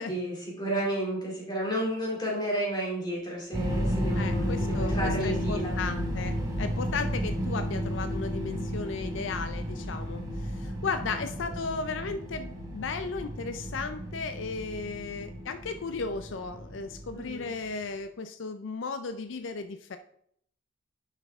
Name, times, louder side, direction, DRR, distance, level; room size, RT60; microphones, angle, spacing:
voice 1, 0.1-5.7 11.6-11.7 17.1-17.5, right 1 dB, 25° left, -3 dB, 2.6 m, -32 dB
sound 1, 3.5-17.5, equal, 20° right, 1.3 m, -33 dB
voice 2, 4.1-20.0, left 4 dB, 80° left, 9 dB, 0.5 m, -35 dB
10.0 x 5.7 x 3.5 m, 0.69 s
head